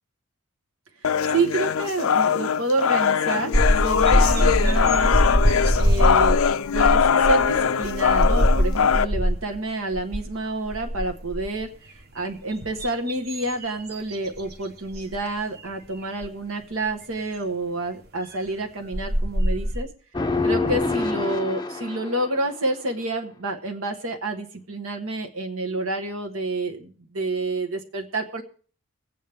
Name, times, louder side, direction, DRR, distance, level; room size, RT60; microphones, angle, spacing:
sound 1, 1.0-9.0, left 7 dB, 85° left, 0.5 m, -21 dB
voice 1, 1.3-3.5 3.8-5.2 5.7-6.4 6.7-11.7 12.1-19.9 20.4-28.4, right 2 dB, 80° right, 3 dB, 1.6 m, -28 dB
sound 2, 3.5-9.6 9.9-10.3 10.7-11.6 12.3-14.5 14.9-15.2 16.2-16.3 18.5-18.6 18.9-19.8, equal, 50° right, 1.2 m, -22 dB
sound 3, 20.1-22.5, left 3 dB, 20° left, 0.5 m, -26 dB
23.0 x 8.7 x 3.6 m, 0.42 s
head